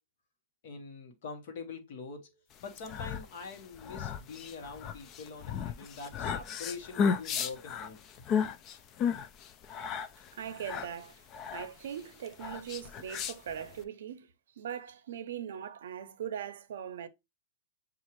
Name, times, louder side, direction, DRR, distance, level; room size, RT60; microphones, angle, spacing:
voice 1, 0.6-8.0, left 4 dB, 50° left, 1.1 m, -44 dB
sound 1, 2.6-13.8, left 7 dB, 25° left, 0.3 m, -34 dB
voice 2, 10.3-11.2 11.5-14.3 14.6-17.1, right 9 dB, 75° right, 0.6 m, -40 dB
7.2 x 2.4 x 3.0 m
supercardioid pair, 165°, 0 cm